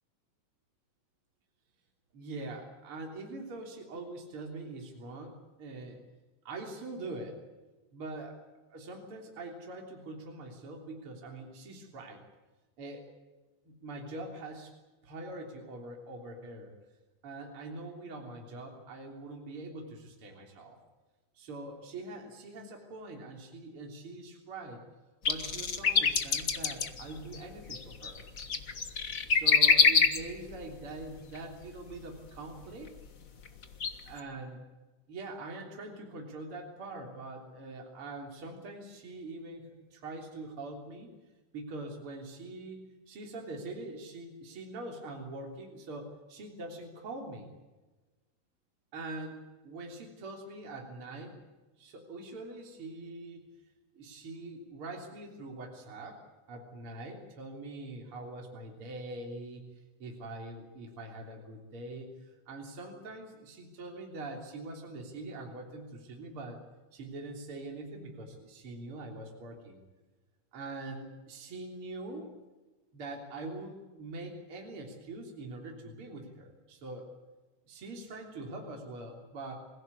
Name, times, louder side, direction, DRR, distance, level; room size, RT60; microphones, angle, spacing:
voice 1, 2.1-6.0 6.4-7.4 7.9-8.4 8.7-12.2 12.8-13.1 13.6-14.7 15.0-16.7 17.2-20.8 21.4-24.8 25.3-28.2 29.2-32.9 34.0-34.6 35.1-41.1 41.5-42.8 43.1-47.5 48.9-51.4 51.8-53.4 53.9-56.2 56.5-59.6 60.0-66.6 66.9-69.8 70.5-72.3 72.9-77.1 77.7-79.5, right 2 dB, 40° right, 1 dB, 4.1 m, -43 dB
sound 1, 25.2-30.6 31.3-31.4 32.8-32.9 33.5-33.9 34.2-34.3, left 5 dB, 45° left, 1.1 m, -25 dB
27.5 x 16.5 x 8.5 m, 1.2 s
omnidirectional pair, 3.7 m